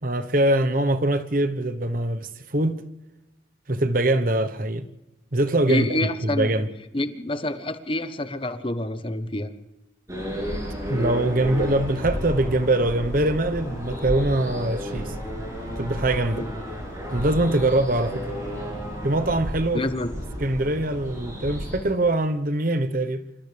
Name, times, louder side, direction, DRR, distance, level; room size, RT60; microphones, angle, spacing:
voice 1, 0.0-2.8 3.7-4.9 5.3-6.7 10.9-15.1 15.8-16.5 17.1-18.3 19.0-19.8 20.4-23.2, right 1 dB, 45° right, 1.2 m, -23 dB
voice 2, 5.7-6.5 6.9-9.5 16.3-16.5 19.7-20.1, left 1 dB, 25° left, 1.2 m, -27 dB
sound 1, 10.1-21.8, equal, 15° right, 7.7 m, -32 dB
28.0 x 26.5 x 3.5 m
head